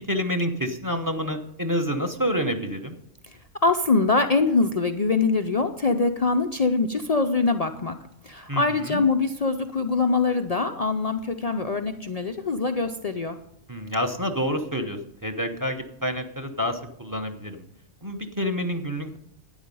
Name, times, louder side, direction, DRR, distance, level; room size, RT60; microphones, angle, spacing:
voice 1, 0.0-3.0 8.5-9.0 13.7-17.6 18.0-19.2, equal, 20° right, 7 dB, 0.7 m, -28 dB
voice 2, 3.3-8.0 8.2-13.4, left 3 dB, 60° left, 6 dB, 0.4 m, -23 dB
12.5 x 9.5 x 5.4 m, 0.77 s
omnidirectional pair, 1.4 m